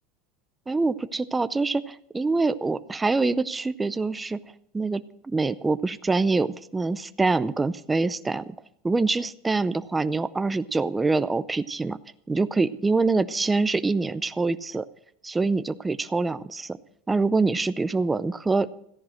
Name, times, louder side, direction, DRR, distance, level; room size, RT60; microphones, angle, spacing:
voice 1, 0.7-4.4 4.7-5.0 5.3-8.5 8.8-12.0 12.3-14.9 15.2-16.8 17.1-18.7, right 3 dB, 10° right, 13 dB, 0.5 m, -25 dB
14.5 x 10.5 x 6.3 m, 0.74 s
supercardioid pair, 125°, 0 cm